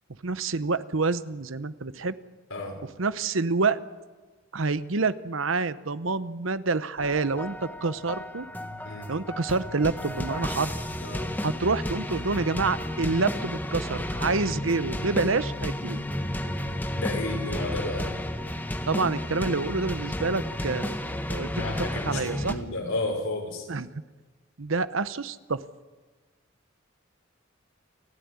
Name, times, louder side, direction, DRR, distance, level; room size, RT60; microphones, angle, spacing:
voice 1, 0.2-2.1 3.0-3.8 4.5-8.5 9.1-10.7 11.4-16.0 18.9-21.0 21.3-22.6 23.7-24.0 24.6-25.6, right 3 dB, 75° right, 14 dB, 0.9 m, -27 dB
voice 2, 2.5-2.8 8.8-9.1 11.0-11.3 16.9-18.1 21.6-23.7, left 2 dB, 90° left, 2 dB, 5.7 m, -32 dB
sound 1, 7.0-22.5, left 1 dB, 10° left, 1.5 m, -32 dB
29.0 x 14.0 x 9.7 m, 1.3 s
head